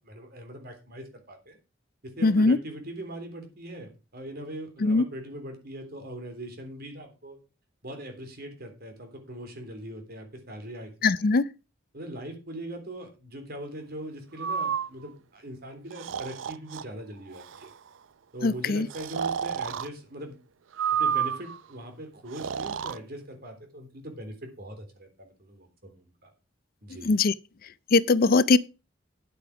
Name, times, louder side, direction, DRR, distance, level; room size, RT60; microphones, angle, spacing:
voice 1, 0.0-1.6 2.0-7.4 7.8-11.3 11.9-17.7 18.3-20.4 20.9-26.3 26.8-27.1, right 1 dB, 55° right, 3.4 m, -41 dB
voice 2, 2.2-2.6 4.8-5.0 11.0-11.4 18.4-18.9 27.1-27.3 27.9-28.6, left 3 dB, 50° left, 0.5 m, -21 dB
Breathing, 14.4-14.9 15.9-16.8 17.3-17.7 18.9-19.9 20.7-21.6 22.3-23.0, right 7 dB, 80° right, 0.5 m, -30 dB
10.5 x 8.6 x 4.8 m
head